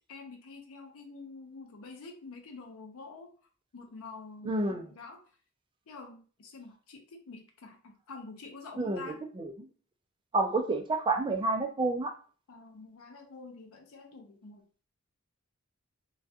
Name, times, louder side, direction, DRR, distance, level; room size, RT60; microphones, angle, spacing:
voice 1, 0.1-3.3 3.7-5.2 5.9-9.2 12.5-14.8, left 3 dB, 65° left, 3 dB, 0.5 m, -47 dB
voice 2, 4.4-4.9 8.8-9.0 9.4-9.7 10.3-12.1, right 2 dB, 20° right, 4 dB, 0.4 m, -29 dB
2.3 x 2.2 x 2.6 m, 0.38 s
head